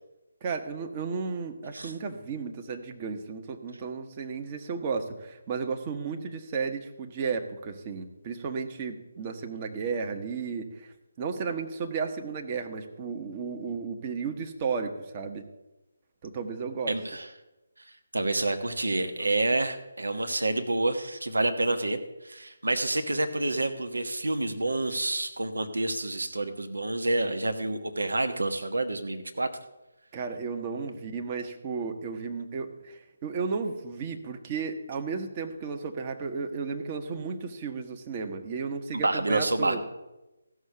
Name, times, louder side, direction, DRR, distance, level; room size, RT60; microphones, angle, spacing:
voice 1, 0.4-15.5 16.2-17.0 30.1-39.8, right 5 dB, 25° right, 5 dB, 1.1 m, -33 dB
voice 2, 16.9-17.3 17.8-29.5 38.9-39.8, right 2 dB, 70° right, 7 dB, 1.2 m, -28 dB
15.0 x 6.4 x 7.0 m, 0.99 s
figure-of-eight pair, 150°, 0 cm